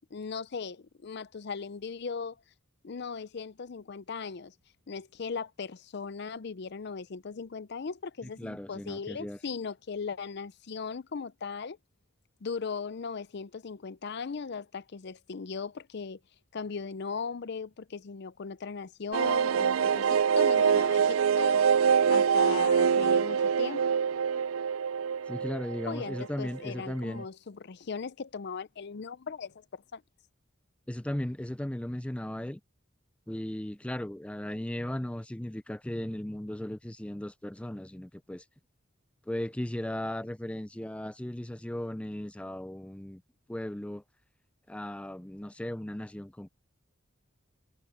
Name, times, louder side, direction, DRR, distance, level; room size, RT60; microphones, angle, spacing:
voice 1, 0.1-2.4 2.8-4.5 4.9-11.8 12.4-16.2 16.5-21.6 22.1-23.8 25.9-30.0, left 5 dB, 55° left, 0.5 m, -38 dB
voice 2, 8.2-9.4 25.3-27.3 30.9-32.6 33.3-38.4 39.3-43.2 43.5-44.0 44.7-46.5, left 1 dB, 5° left, 0.4 m, -36 dB
sound 1, 19.1-26.6 26.9-27.0 27.2-27.3, right 7 dB, 85° right, 0.4 m, -25 dB
head